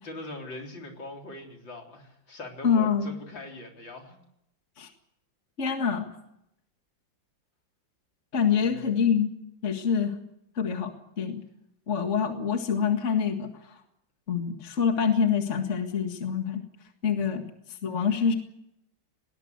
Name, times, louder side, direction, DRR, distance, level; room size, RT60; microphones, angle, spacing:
voice 1, 0.0-4.2 8.6-8.9 17.3-17.4, left 2 dB, 75° left, 2 dB, 4.5 m, -42 dB
voice 2, 2.6-3.1 4.8-4.9 5.6-6.1 8.3-9.3 9.6-10.1 10.6-11.4 11.9-13.8 14.3-16.6 17.0-17.4 17.8-18.3, left 6 dB, 40° left, 5 dB, 2.1 m, -26 dB
19.5 x 19.5 x 8.0 m, 0.80 s
omnidirectional pair, 2.1 m